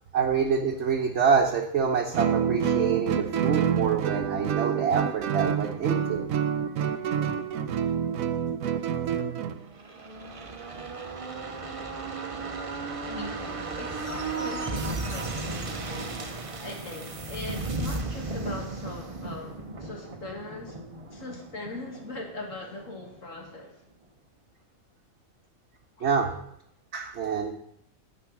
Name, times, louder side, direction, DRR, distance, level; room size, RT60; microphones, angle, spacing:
voice 1, 0.1-6.2 26.0-26.3 26.9-27.5, right 6 dB, 55° right, 1 dB, 1.1 m, -26 dB
Guitar, 2.1-9.6, right 8 dB, 85° right, 1.1 m, -27 dB
sound 1, 9.7-23.2 23.5-23.6, right 3 dB, 30° right, 0.7 m, -35 dB
voice 2, 13.1-20.8 21.1-23.8 26.0-26.4, left 2 dB, 70° left, 1 dB, 2.5 m, -41 dB
10.0 x 7.6 x 5.9 m, 0.74 s
omnidirectional pair, 1.4 m